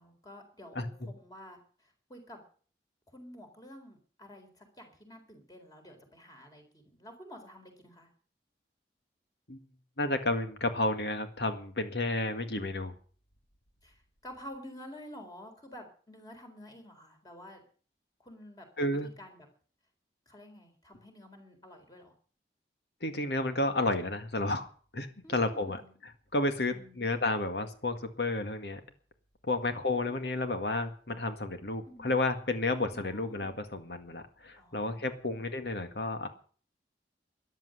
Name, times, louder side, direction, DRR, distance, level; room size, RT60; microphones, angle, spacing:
voice 1, 0.0-2.4 3.1-8.1 13.8-17.6 18.2-19.5 20.3-22.1 25.2-26.0 26.7-27.2 29.6-30.2 31.8-32.2 32.8-33.5 34.6-35.5, equal, 20° left, 4 dB, 3.9 m, -50 dB
voice 2, 10.0-12.9 18.8-19.1 23.0-24.7 24.9-25.8 26.3-28.8 29.5-36.3, left 2 dB, 75° left, 7 dB, 2.0 m, -31 dB
14.0 x 10.5 x 7.8 m, 0.43 s
head